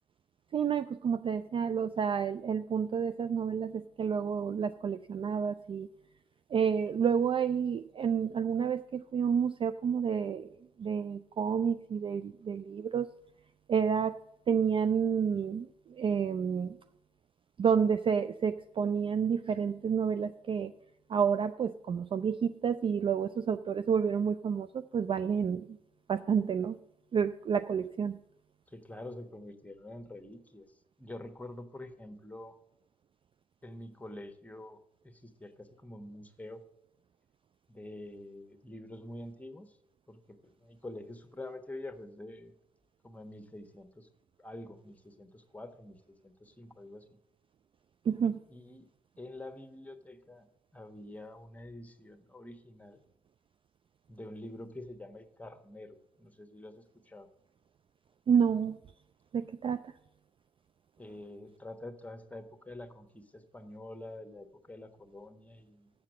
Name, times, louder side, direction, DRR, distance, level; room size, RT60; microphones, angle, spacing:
voice 1, 0.5-5.9 6.5-10.5 10.8-13.1 13.7-14.2 14.5-16.8 17.6-20.7 21.1-25.8 26.1-26.8 27.1-28.2 48.1-48.4 58.3-58.8 59.3-59.9, right 7 dB, 30° right, 10 dB, 0.4 m, -29 dB
voice 2, 28.7-30.7 31.0-32.6 33.6-34.8 35.0-36.6 37.7-39.8 40.1-40.2 40.6-42.5 43.0-44.1 44.4-47.0 48.5-48.9 49.2-50.5 50.7-53.0 54.1-57.3 61.0-65.9, left 1 dB, 10° left, 7 dB, 1.2 m, -46 dB
7.4 x 7.4 x 7.4 m, 0.79 s
figure-of-eight pair, 40°, 18 cm